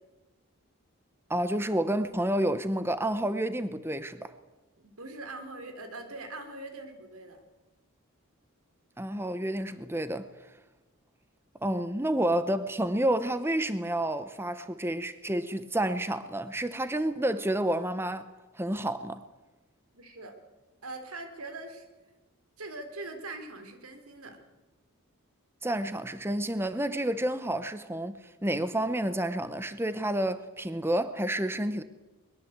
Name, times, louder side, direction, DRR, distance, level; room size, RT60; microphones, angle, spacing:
voice 1, 1.3-4.3 9.0-10.3 11.6-18.3 18.5-19.2 25.6-31.8, right 1 dB, 10° right, 0.8 m, -29 dB
voice 2, 4.8-7.4 19.9-20.3 20.8-21.9 22.6-24.4, right 2 dB, 85° right, 3.7 m, -42 dB
22.0 x 21.5 x 8.0 m
head